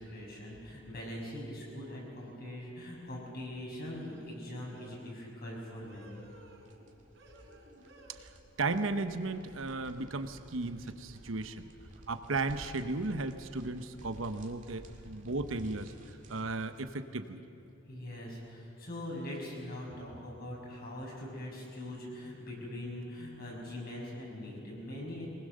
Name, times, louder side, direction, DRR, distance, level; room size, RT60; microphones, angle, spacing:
voice 1, 0.0-6.2 17.9-25.3, left 1 dB, 50° left, -3 dB, 6.2 m, -42 dB
sound 1, 2.2-2.5 3.9-5.1 5.8-6.9 7.1-8.1, right 1 dB, 60° right, 4.7 m, -57 dB
sound 2, 6.2-16.9, right 1 dB, 40° right, 1.9 m, -55 dB
voice 2, 8.6-11.7 12.1-15.9 16.3-17.4, right 3 dB, 85° right, 9 dB, 1.0 m, -35 dB
22.5 x 20.0 x 6.6 m, 2.8 s
head